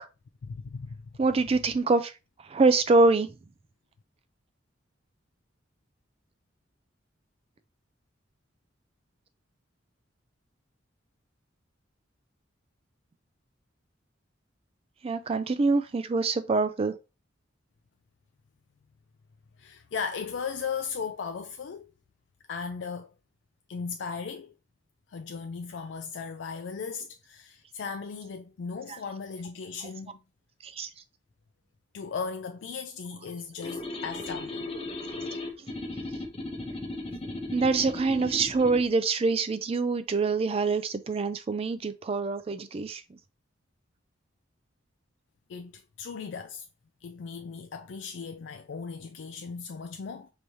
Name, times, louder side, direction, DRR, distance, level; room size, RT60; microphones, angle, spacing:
voice 1, 0.4-1.1 19.6-21.9 22.5-23.1 23.7-24.5 25.1-30.2 31.9-35.2 45.5-46.7 47.0-50.3, left 5 dB, 70° left, 0.4 m, -37 dB
voice 2, 1.2-2.1 2.5-3.3 15.0-17.0 30.6-30.9 37.5-43.0, right 3 dB, 30° right, 0.3 m, -25 dB
sound 1, 33.6-38.8, left 2 dB, 30° left, 0.7 m, -36 dB
4.8 x 3.1 x 2.6 m
head